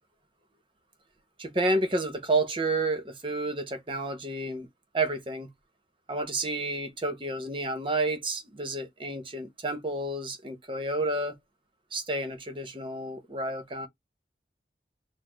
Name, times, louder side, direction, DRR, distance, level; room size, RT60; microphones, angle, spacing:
voice 1, 1.4-4.7 4.9-5.5 6.1-11.4 11.9-13.9, right 2 dB, 30° right, 0.8 m, -30 dB
4.1 x 2.0 x 3.0 m
head